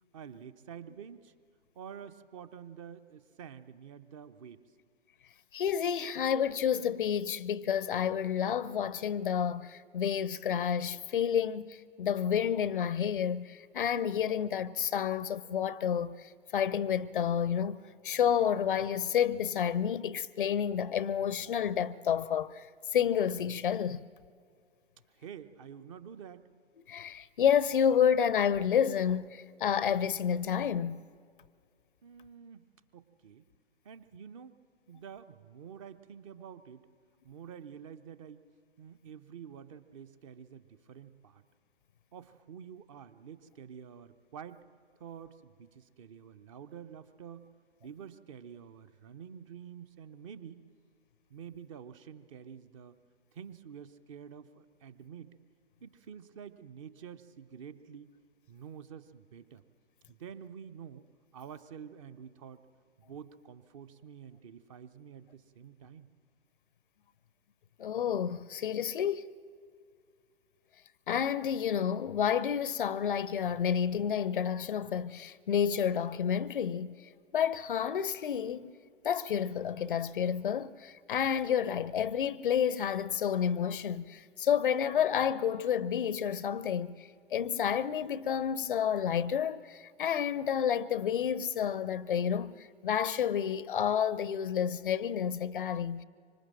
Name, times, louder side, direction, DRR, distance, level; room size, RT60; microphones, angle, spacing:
voice 1, 0.1-1.3 1.7-4.6 25.1-26.4 32.0-32.7 32.9-33.4 33.8-34.6 34.9-36.8 37.2-38.4 38.8-41.4 42.1-44.6 45.0-47.4 47.8-50.6 51.3-53.0 53.3-55.4 55.8-58.1 58.5-59.6 60.1-61.0 61.3-62.6 63.1-66.1, right 8 dB, 30° right, 0.8 m, -48 dB
voice 2, 5.5-17.8 18.0-22.7 22.9-24.0 26.9-31.0 67.8-69.3 71.1-77.0 77.3-78.7 79.0-96.0, left 8 dB, 45° left, 0.6 m, -30 dB
25.5 x 25.0 x 7.5 m
figure-of-eight pair, 120°, 35 cm